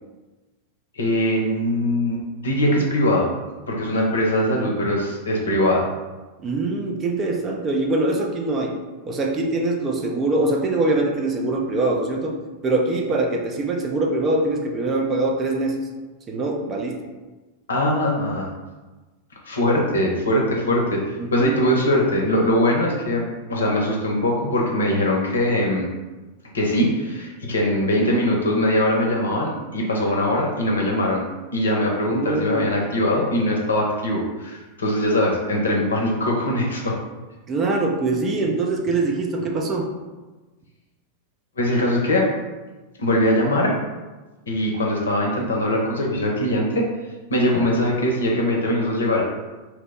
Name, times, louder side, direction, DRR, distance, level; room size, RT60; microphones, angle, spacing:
voice 1, 1.0-3.3 3.7-5.9 17.7-18.5 19.4-23.2 23.5-25.9 26.5-31.2 31.5-37.0 41.6-42.3 43.0-43.7 44.5-46.9 47.3-49.2, left 1 dB, 70° left, -1 dB, 0.6 m, -21 dB
voice 2, 6.4-8.7 9.0-15.8 16.3-17.0 21.2-21.6 32.1-32.8 37.5-39.9, right 2 dB, 25° right, 1 dB, 0.5 m, -23 dB
2.9 x 2.0 x 3.6 m, 1.2 s
figure-of-eight pair, 90°, 0 cm